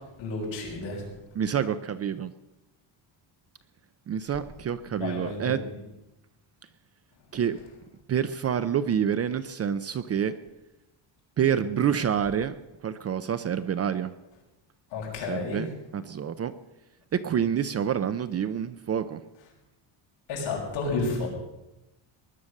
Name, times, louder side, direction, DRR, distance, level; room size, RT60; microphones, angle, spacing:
voice 1, 0.2-1.0 5.0-5.6 11.7-12.0 14.9-15.7 20.3-21.3, left 3 dB, 65° left, -2 dB, 6.8 m, -31 dB
voice 2, 1.3-2.3 4.1-5.6 7.3-7.6 8.1-10.4 11.4-12.6 12.8-14.1 15.3-15.7 15.9-16.5 17.1-19.2, right 8 dB, 30° right, 13 dB, 0.5 m, -27 dB
20.0 x 11.0 x 6.5 m, 0.96 s
cardioid pair, 165°, 48 cm